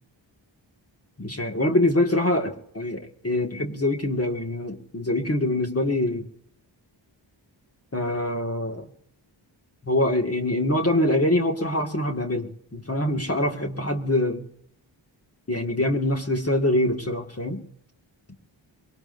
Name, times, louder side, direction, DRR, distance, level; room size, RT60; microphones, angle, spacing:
voice 1, 1.2-6.3 7.9-8.9 9.8-14.4 15.5-17.6, left 1 dB, 30° left, 2 dB, 2.0 m, -24 dB
23.5 x 18.0 x 2.6 m, 0.69 s
cardioid pair, 65°, 48 cm